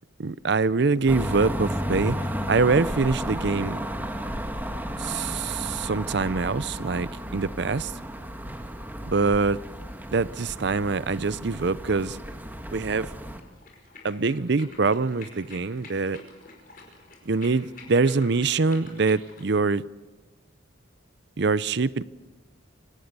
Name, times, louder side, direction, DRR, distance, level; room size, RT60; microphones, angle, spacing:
voice 1, 0.2-2.2 2.5-3.8 5.0-7.9 9.0-9.6 10.1-12.2 12.7-13.1 14.0-16.2 17.3-19.8 21.4-22.0, right 4 dB, 60° right, 0.6 m, -24 dB
sound 1, 1.1-13.4, equal, 10° right, 1.5 m, -33 dB
sound 2, 13.3-19.5, left 4 dB, 45° left, 5.3 m, -48 dB
25.5 x 17.5 x 6.9 m
head